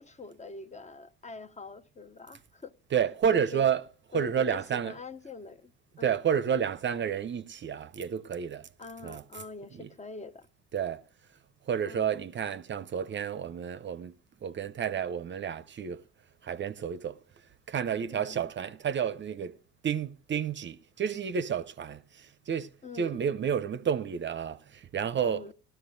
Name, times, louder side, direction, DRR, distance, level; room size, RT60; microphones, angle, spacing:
voice 1, 0.0-2.7 3.3-3.7 4.1-5.7 6.0-6.2 8.8-10.5 11.8-12.2 18.1-18.5 22.8-23.3 25.2-25.5, left 3 dB, 20° left, 0.7 m, -44 dB
voice 2, 2.9-3.8 4.1-4.9 6.0-8.7 9.0-9.2 9.7-9.9 10.7-11.0 11.7-16.0 16.4-17.2 17.7-19.5 19.8-22.7 22.9-25.5, right 8 dB, 35° right, 0.6 m, -30 dB
17.5 x 13.5 x 2.6 m
supercardioid pair, 85°, 33 cm